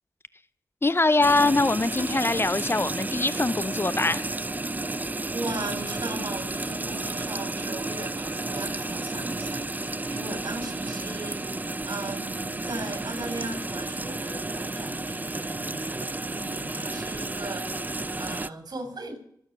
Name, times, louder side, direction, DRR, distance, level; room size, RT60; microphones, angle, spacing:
voice 1, 0.8-4.2, left 3 dB, 30° left, 0.7 m, -23 dB
sound 1, 1.2-18.5, right 2 dB, 25° right, 0.6 m, -32 dB
voice 2, 5.3-19.2, right 2 dB, 65° right, 5.9 m, -38 dB
25.5 x 9.2 x 6.2 m
cardioid pair, 55°, 7 cm